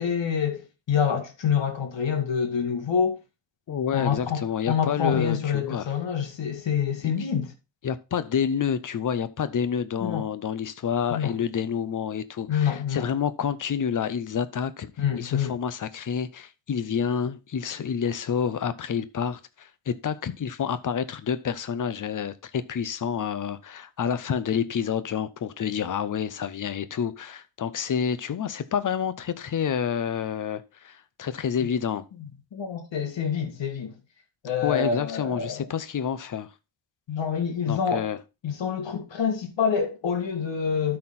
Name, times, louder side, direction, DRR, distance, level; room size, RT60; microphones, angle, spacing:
voice 1, 0.0-3.2 3.9-7.5 10.0-10.3 11.1-11.4 12.5-13.1 15.0-15.5 32.5-34.0 34.4-35.7 37.1-38.1 38.4-41.0, left 7 dB, 70° left, 1.9 m, -27 dB
voice 2, 3.7-5.9 7.8-14.9 15.2-32.0 34.6-36.5 37.7-38.2, left 7 dB, 45° left, 0.7 m, -28 dB
12.5 x 4.4 x 4.2 m
wide cardioid pair, 165°, 45 cm